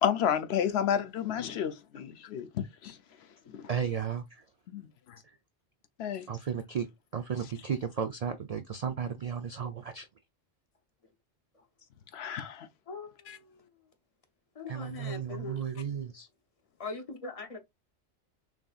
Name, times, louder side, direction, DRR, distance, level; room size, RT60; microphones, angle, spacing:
voice 1, 0.0-3.0 3.6-3.7 4.7-5.2 6.0-6.3 12.1-12.7 13.3-13.4, left 9 dB, 70° left, 0.8 m, -31 dB
voice 2, 3.7-4.4 5.2-5.4 6.3-6.9 7.1-10.1 14.7-16.3, right 7 dB, 60° right, 0.4 m, -34 dB
voice 3, 12.9-13.6 14.6-15.6 16.8-17.6, left 3 dB, 35° left, 0.7 m, -42 dB
6.0 x 2.6 x 2.3 m
omnidirectional pair, 1.2 m